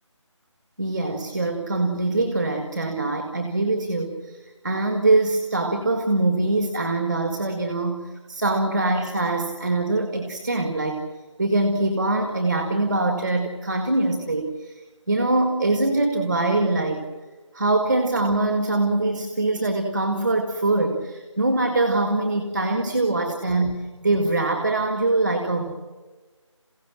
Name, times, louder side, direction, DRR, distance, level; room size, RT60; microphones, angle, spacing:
voice 1, 0.8-4.4 4.6-11.0 11.4-14.7 15.1-17.1 17.5-25.7, right 2 dB, 5° right, 4 dB, 1.1 m, -23 dB
28.0 x 16.5 x 7.6 m, 1.3 s
figure-of-eight pair, 170°, 16 cm